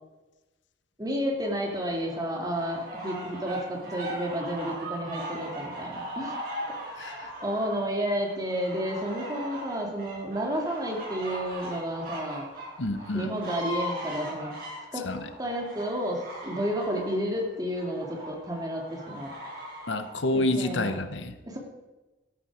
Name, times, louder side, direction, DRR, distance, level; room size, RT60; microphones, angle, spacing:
voice 1, 1.0-6.4 6.9-12.5 13.1-14.5 14.9-15.0 15.4-19.3 20.3-21.0 21.5-21.6, equal, 20° right, 0 dB, 2.6 m, -31 dB
sound 1, 1.4-21.0, equal, 50° right, 5.5 m, -39 dB
voice 2, 6.9-7.3 12.8-13.3 15.0-15.3 19.9-21.4, left 2 dB, 75° left, 10 dB, 1.0 m, -28 dB
14.0 x 12.5 x 4.9 m, 1.1 s
head